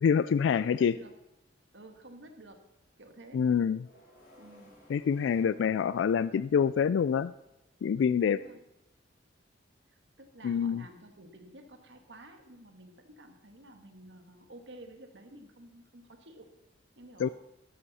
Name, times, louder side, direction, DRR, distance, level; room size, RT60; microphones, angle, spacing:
voice 1, 0.0-0.9 3.3-3.8 4.9-7.3 7.8-8.4 10.4-10.8 17.2-17.3, left 7 dB, 80° left, 16 dB, 0.3 m, -26 dB
voice 2, 0.6-1.2 1.7-2.7 3.0-3.5 4.4-4.8 5.4-5.8 8.0-8.6 9.9-16.5 17.0-17.3, right 1 dB, 70° right, 6 dB, 1.7 m, -52 dB
sound 1, 3.8-6.5, equal, 55° left, 3.8 m, -58 dB
13.0 x 12.5 x 4.2 m, 0.92 s
head